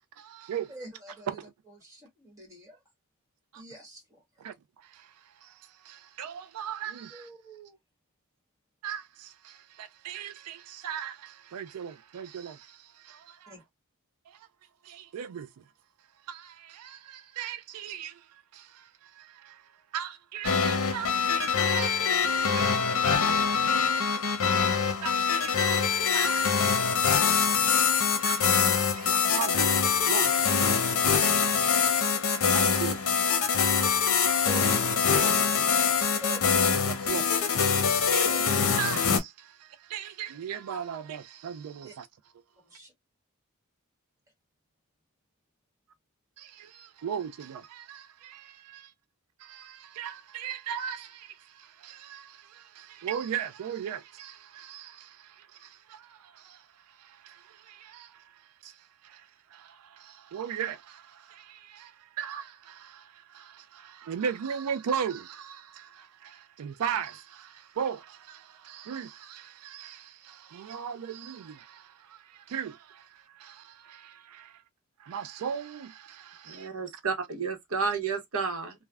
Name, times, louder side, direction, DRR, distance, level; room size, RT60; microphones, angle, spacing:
voice 1, 0.2-0.7 1.4-1.5 3.5-3.6 4.4-7.3 8.8-13.5 14.3-14.5 14.8-15.6 16.3-22.0 22.2-27.3 27.6-27.8 28.2-34.5 36.9-42.1 46.4-48.9 49.4-74.6 75.0-76.7, right 8 dB, 90° right, 0.4 m, -39 dB
voice 2, 0.7-1.4 1.7-2.8 3.5-4.2 7.1-7.8 13.5-13.6 34.4-36.4 38.3-38.5 41.8-41.9 42.6-42.9, right 1 dB, 15° right, 1.3 m, -45 dB
sound 1, 20.4-39.2, left 6 dB, 65° left, 0.8 m, -24 dB
voice 3, 76.4-78.7, right 5 dB, 70° right, 0.9 m, -31 dB
3.3 x 2.2 x 2.2 m
head